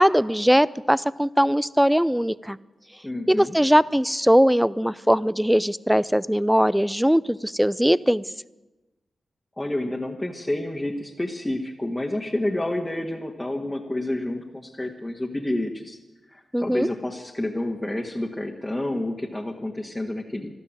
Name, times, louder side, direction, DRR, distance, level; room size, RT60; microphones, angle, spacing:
voice 1, 0.0-2.6 3.3-8.2 16.5-16.9, equal, 5° right, 20 dB, 0.5 m, -20 dB
voice 2, 3.0-3.6 9.6-16.0 16.3-20.5, left 1 dB, 15° left, 0 dB, 1.7 m, -29 dB
13.0 x 12.5 x 8.9 m, 1.1 s
cardioid pair, 50°, 0 cm